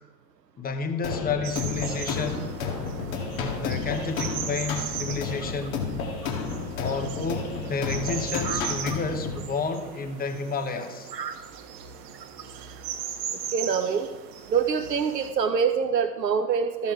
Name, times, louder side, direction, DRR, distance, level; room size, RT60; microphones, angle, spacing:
voice 1, 0.6-2.5 3.6-5.8 6.7-11.1, left 4 dB, 20° left, 7 dB, 1.1 m, -31 dB
sound 1, 1.0-9.4, left 5 dB, 55° left, 2.0 m, -31 dB
sound 2, 1.4-15.3, right 8 dB, 40° right, 1.3 m, -38 dB
voice 2, 8.4-9.0 11.1-11.3 13.5-14.1 14.5-16.9, right 6 dB, 80° right, 7 dB, 0.8 m, -25 dB
13.5 x 7.1 x 4.7 m, 1.2 s
figure-of-eight pair, 80°, 49 cm